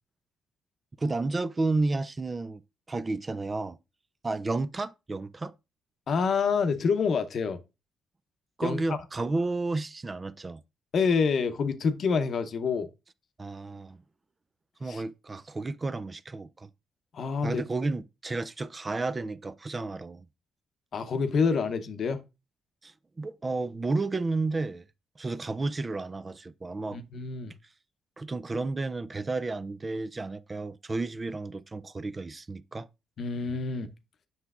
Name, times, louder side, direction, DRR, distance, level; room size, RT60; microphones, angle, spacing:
voice 1, 1.0-2.6 2.9-3.8 4.2-5.5 8.6-10.6 13.4-14.0 14.8-16.7 17.4-20.3 22.8-24.9 25.2-27.0 28.2-32.9, right 3 dB, 25° right, 0.3 m, -32 dB
voice 2, 6.1-7.6 8.6-8.8 10.9-12.9 14.9-15.0 17.1-17.6 20.9-22.2 26.9-27.5 33.2-33.9, left 5 dB, 55° left, 0.7 m, -27 dB
7.8 x 5.8 x 2.4 m
cardioid pair, 90°, 0 cm